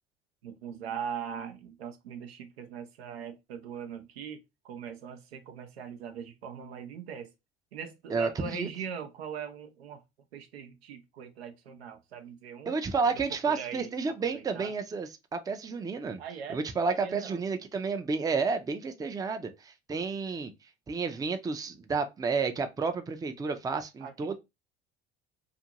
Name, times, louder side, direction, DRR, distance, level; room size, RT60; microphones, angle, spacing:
voice 1, 0.4-7.3 7.7-10.0 10.3-12.7 13.0-13.2 13.5-13.9 14.2-14.7 16.2-16.6 16.9-17.4 24.0-24.4, right 7 dB, 85° right, 0.6 m, -41 dB
voice 2, 8.1-8.7 12.7-16.2 16.5-20.5 20.9-24.4, right 4 dB, 10° right, 0.4 m, -31 dB
2.5 x 2.5 x 2.8 m
hypercardioid pair, 70°, 30 cm